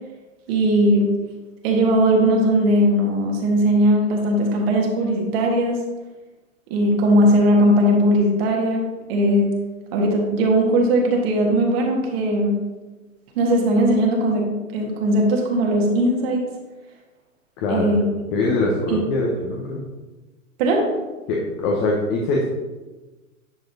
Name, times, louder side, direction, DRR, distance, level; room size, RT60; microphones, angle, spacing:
voice 1, 0.5-1.1 1.6-5.8 6.7-9.5 9.9-12.6 13.3-16.5 17.7-18.0 18.9-19.0 20.6-20.9, equal, 50° right, 0 dB, 1.7 m, -19 dB
voice 2, 17.6-17.9 18.3-19.8 21.3-22.5, left 2 dB, 35° left, -2 dB, 1.1 m, -22 dB
10.5 x 4.9 x 2.7 m, 1.2 s
hypercardioid pair, 120°, 40 cm